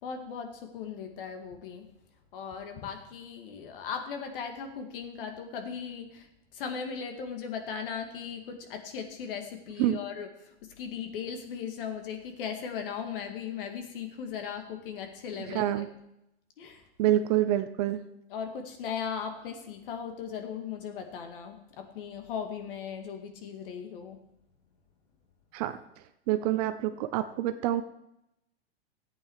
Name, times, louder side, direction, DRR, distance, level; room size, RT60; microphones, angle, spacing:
voice 1, 0.0-1.9 2.3-15.9 16.6-16.9 18.3-24.2, left 7 dB, 55° left, 5 dB, 2.1 m, -38 dB
voice 2, 15.5-15.9 17.0-18.0 25.5-25.8 26.3-27.8, right 12 dB, 35° right, 10 dB, 0.7 m, -27 dB
14.5 x 8.7 x 4.8 m, 0.83 s
hypercardioid pair, 150°, 34 cm